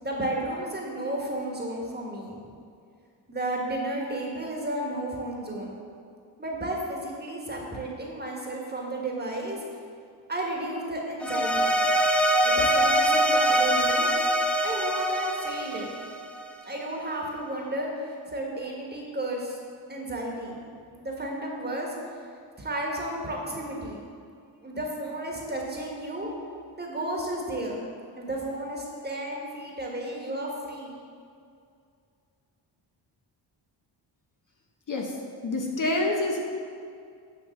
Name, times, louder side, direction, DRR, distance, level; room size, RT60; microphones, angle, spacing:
voice 1, 0.0-2.4 3.3-5.8 6.4-9.6 10.3-11.7 12.4-14.1 14.6-15.9 16.6-19.6 19.9-20.6 21.0-21.9 22.6-24.0 24.6-26.3 26.8-27.8 28.1-30.9, right 1 dB, 20° right, -1 dB, 1.3 m, -32 dB
sound 1, 11.2-16.5, right 1 dB, 5° left, 0.3 m, -24 dB
voice 2, 35.4-36.4, left 2 dB, 40° left, 1 dB, 0.8 m, -27 dB
9.4 x 3.3 x 6.4 m, 2.4 s
cardioid pair, 110°, 46 cm